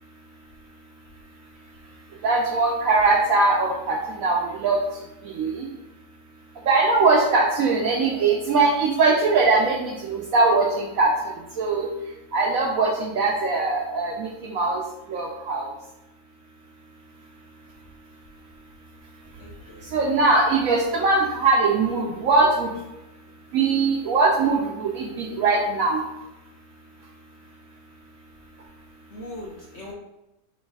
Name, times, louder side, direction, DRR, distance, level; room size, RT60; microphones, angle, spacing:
voice 1, 2.2-4.8 5.3-5.7 6.7-11.1 11.6-11.9 12.3-14.8 15.1-15.7 19.9-22.7 23.5-26.0, right 3 dB, 70° right, -1 dB, 0.8 m, -21 dB
voice 2, 19.4-20.0 29.1-29.9, left 1 dB, 60° left, -2 dB, 0.8 m, -40 dB
3.2 x 3.1 x 4.6 m, 0.96 s
omnidirectional pair, 1.9 m